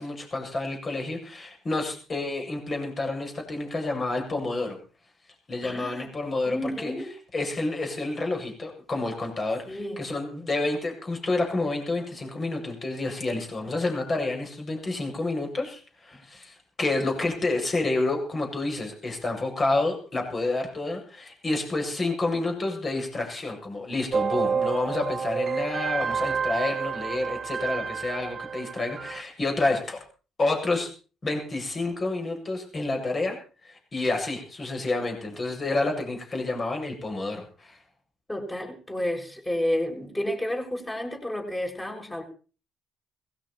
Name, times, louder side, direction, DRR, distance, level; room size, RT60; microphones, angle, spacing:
voice 1, 0.0-4.8 5.5-6.9 7.3-30.0 30.4-30.9 31.2-33.4 33.6-37.8, left 2 dB, 35° left, 2 dB, 8.0 m, -29 dB
voice 2, 5.6-6.1 6.5-7.1 9.7-10.0 38.3-42.2, left 1 dB, 15° left, 2 dB, 7.6 m, -31 dB
sound 1, 24.1-29.2, right 6 dB, 45° right, 1.2 m, -29 dB
19.0 x 16.5 x 4.4 m, 0.38 s
hypercardioid pair, 55°, 0 cm